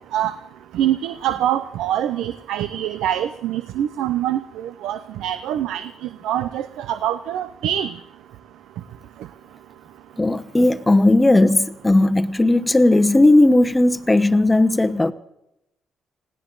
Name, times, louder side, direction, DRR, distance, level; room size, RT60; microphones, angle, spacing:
voice 1, 0.7-7.9, right 11 dB, 85° right, 0.6 m, -24 dB
voice 2, 10.2-15.1, left 2 dB, 15° left, 1.0 m, -16 dB
20.5 x 16.5 x 4.0 m
cardioid pair, 90°, 0 cm